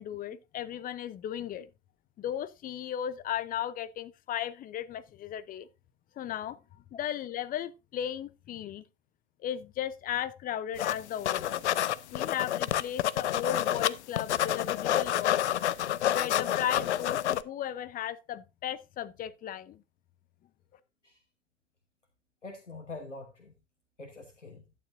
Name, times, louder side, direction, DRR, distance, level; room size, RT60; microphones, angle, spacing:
voice 1, 0.0-1.7 2.2-5.7 6.2-8.8 9.4-11.7 12.1-15.6 16.1-19.8, left 10 dB, 25° left, 0.6 m, -36 dB
sound 1, 10.8-11.0 11.2-13.9 14.2-17.4, left 12 dB, 70° left, 0.6 m, -28 dB
voice 2, 22.4-23.6 24.0-24.7, left 3 dB, 90° left, 1.2 m, -45 dB
11.5 x 9.3 x 2.6 m
figure-of-eight pair, 85°, 36 cm